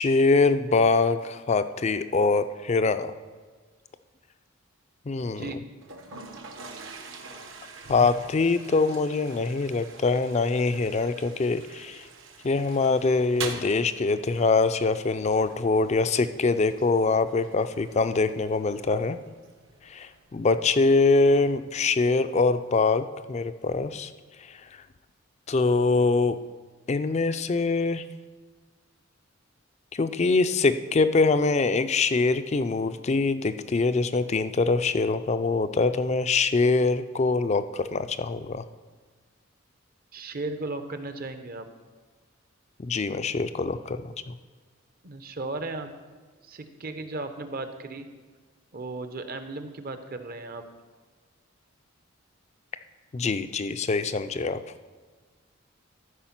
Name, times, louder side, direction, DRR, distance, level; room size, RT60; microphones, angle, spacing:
voice 1, 0.0-3.1 5.1-5.6 7.9-12.0 12.4-19.2 19.9-24.1 24.5-24.6 25.5-26.4 26.9-28.0 29.9-38.6 42.8-44.1 53.1-54.6, left 3 dB, 30° left, 12 dB, 0.4 m, -24 dB
voice 2, 5.2-5.6 40.1-41.7 45.0-45.9 46.4-48.1 48.7-50.6, right 2 dB, 45° right, 8 dB, 0.7 m, -35 dB
Toilet flush, 5.8-22.8, right 4 dB, 65° right, 1.0 m, -45 dB
13.0 x 4.9 x 5.8 m, 1.4 s
head